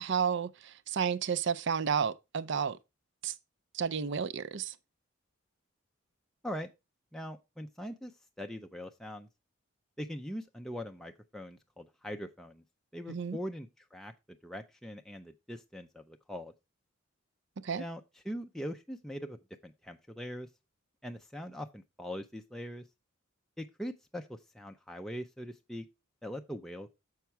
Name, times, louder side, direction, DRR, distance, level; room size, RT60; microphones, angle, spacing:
voice 1, 0.0-2.8 3.2-3.3 3.7-4.7 13.1-13.4 17.6-17.8, right 7 dB, 55° right, 0.5 m, -31 dB
voice 2, 7.1-9.3 10.0-12.6 12.9-16.5 17.8-20.5 21.0-22.9 23.6-25.9 26.2-26.9, equal, ahead, 0.4 m, -42 dB
7.1 x 5.8 x 4.4 m
head